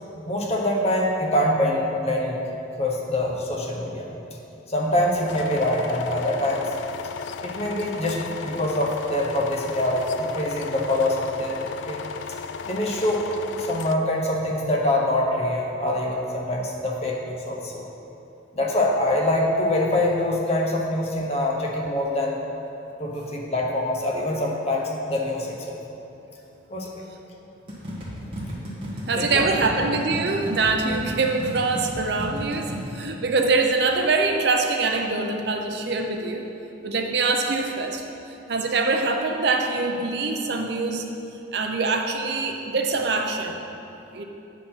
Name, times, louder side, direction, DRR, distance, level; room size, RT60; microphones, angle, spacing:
voice 1, 0.2-2.4 2.8-4.1 4.7-6.8 7.4-12.0 12.7-13.2 13.6-17.8 18.5-22.4 23.0-25.8 26.7-27.0 29.1-29.4, left 1 dB, 30° left, -1 dB, 1.0 m, -24 dB
sound 1, 5.3-13.9, left 6 dB, 70° left, 0.3 m, -35 dB
sound 2, 27.7-32.8, equal, 30° right, 1.7 m, -34 dB
voice 2, 29.1-36.4 36.8-38.0 38.5-41.1 41.5-43.6 44.1-44.2, right 3 dB, 55° right, 4 dB, 0.6 m, -24 dB
9.3 x 4.5 x 5.7 m, 2.9 s
head